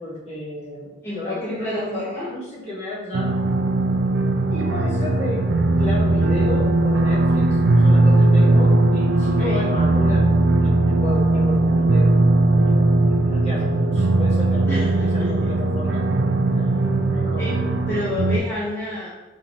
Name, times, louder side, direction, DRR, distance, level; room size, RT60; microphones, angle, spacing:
voice 1, 0.0-3.4 4.1-4.2 4.5-5.5 5.8-10.3 10.6-12.2 12.5-16.1 16.5-16.7 17.1-17.5, left 1 dB, 35° left, -6 dB, 1.2 m, -32 dB
voice 2, 1.0-2.3 9.2-9.6 14.6-15.3 17.3-19.1, left 1 dB, 10° left, -9 dB, 0.7 m, -29 dB
sound 1, 3.1-18.4, right 2 dB, 55° right, 0.4 m, -18 dB
4.9 x 2.8 x 2.9 m, 1.1 s
head